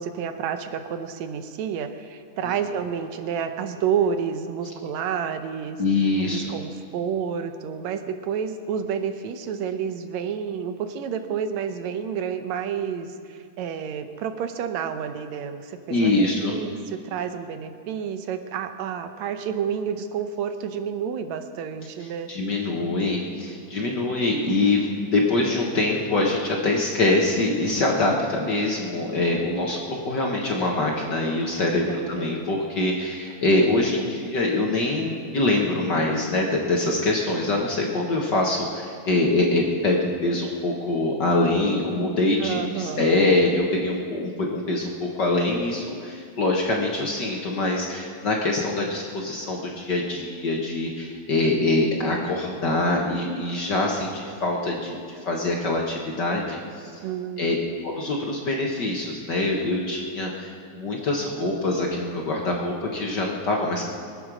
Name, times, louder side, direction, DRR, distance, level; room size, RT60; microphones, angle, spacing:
voice 1, 0.0-5.8 6.2-22.3 31.8-32.3 42.4-43.2 57.0-57.5, right 7 dB, 75° right, 8 dB, 2.1 m, -30 dB
voice 2, 5.8-6.6 15.9-16.6 22.3-55.0 55.2-56.9 57.4-57.6 57.8-63.9, left 2 dB, 50° left, -1 dB, 1.5 m, -24 dB
23.5 x 8.4 x 6.2 m, 2.2 s
omnidirectional pair, 3.3 m